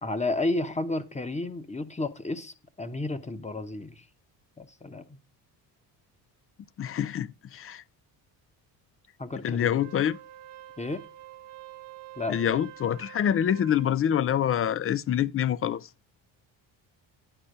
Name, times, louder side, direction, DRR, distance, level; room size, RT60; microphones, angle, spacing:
voice 1, 0.0-4.0 4.6-5.2 9.2-9.7 10.8-11.0 12.2-12.6, left 2 dB, 15° left, 1.0 m, -32 dB
voice 2, 6.8-7.8 9.4-10.2 12.3-15.9, left 9 dB, 30° left, 0.4 m, -26 dB
Wind instrument woodwind instrument, 9.7-14.0, right 14 dB, 60° right, 1.2 m, -47 dB
10.0 x 4.3 x 6.4 m
supercardioid pair, 80°, 46 cm